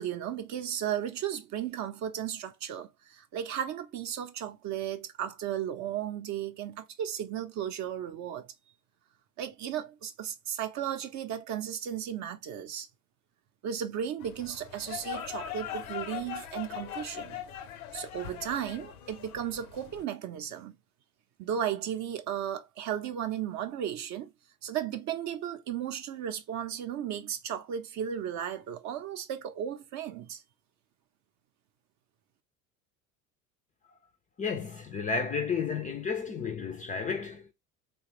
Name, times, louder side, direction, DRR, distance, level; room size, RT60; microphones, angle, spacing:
voice 1, 0.0-8.5 9.4-12.9 13.6-17.4 17.9-20.8 21.4-24.3 24.6-30.4, right 9 dB, 40° right, 0.6 m, -35 dB
sound 1, 14.2-20.0, left 9 dB, 75° left, 0.7 m, -40 dB
voice 2, 34.4-37.5, left 5 dB, 20° left, 0.4 m, -32 dB
3.1 x 2.3 x 2.9 m
hypercardioid pair, 75°, 43 cm